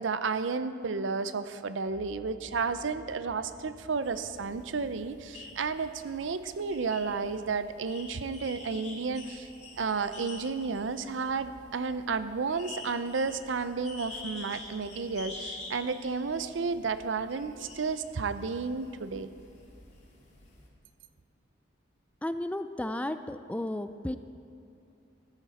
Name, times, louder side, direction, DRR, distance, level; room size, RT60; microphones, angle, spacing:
voice 1, 0.0-9.5 9.8-19.3, right 4 dB, 75° right, 12 dB, 0.6 m, -32 dB
sound 1, 1.8-7.9, equal, 45° right, 1.5 m, -56 dB
sound 2, 4.0-20.7, left 2 dB, 35° left, 2.0 m, -48 dB
voice 2, 22.2-24.2, left 1 dB, 5° left, 10 dB, 0.3 m, -33 dB
14.0 x 13.0 x 4.2 m, 2.7 s
head